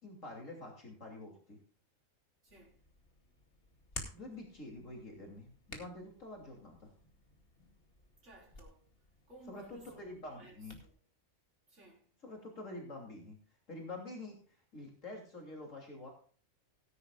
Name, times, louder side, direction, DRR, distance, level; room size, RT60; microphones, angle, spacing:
voice 1, 0.0-1.6 4.1-6.9 9.5-10.8 12.2-13.4 13.7-14.4 14.7-16.1, left 2 dB, 75° left, 3.4 m, -47 dB
voice 2, 2.4-2.8 8.2-8.9 9.3-11.0 11.7-12.1, right 1 dB, 65° right, 4.6 m, -57 dB
Hands, 2.5-10.9, left 2 dB, 45° left, 2.5 m, -53 dB
18.5 x 10.5 x 2.4 m
omnidirectional pair, 1.3 m